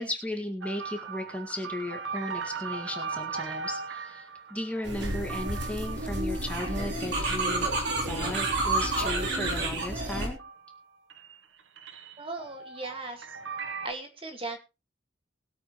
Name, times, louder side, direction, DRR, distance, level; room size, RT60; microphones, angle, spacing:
voice 1, 0.0-7.7 8.1-10.4, left 1 dB, 5° left, 3 dB, 2.0 m, -35 dB
sound 1, 0.6-10.8 11.1-13.9, right 5 dB, 90° right, 1.1 m, -39 dB
sound 2, 4.9-10.3, right 2 dB, 65° right, 3.6 m, -30 dB
voice 2, 12.2-13.4 13.8-14.6, right 3 dB, 30° right, 3 dB, 2.0 m, -37 dB
21.0 x 8.7 x 3.1 m, 0.29 s
head